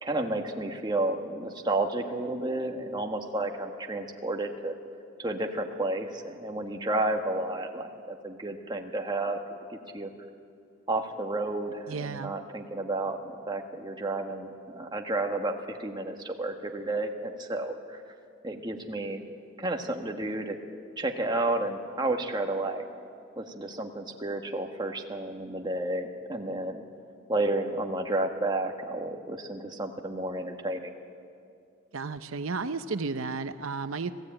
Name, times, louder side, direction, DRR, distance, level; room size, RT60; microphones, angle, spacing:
voice 1, 0.0-4.7 5.2-9.4 9.7-10.1 10.9-18.0 18.4-19.2 19.6-20.6 21.0-22.9 23.4-26.8 27.3-30.9, right 2 dB, 20° right, 3 dB, 1.5 m, -31 dB
voice 2, 11.9-12.3 31.9-34.1, right 4 dB, 80° right, 11 dB, 0.7 m, -33 dB
26.0 x 16.5 x 8.9 m, 2.4 s
head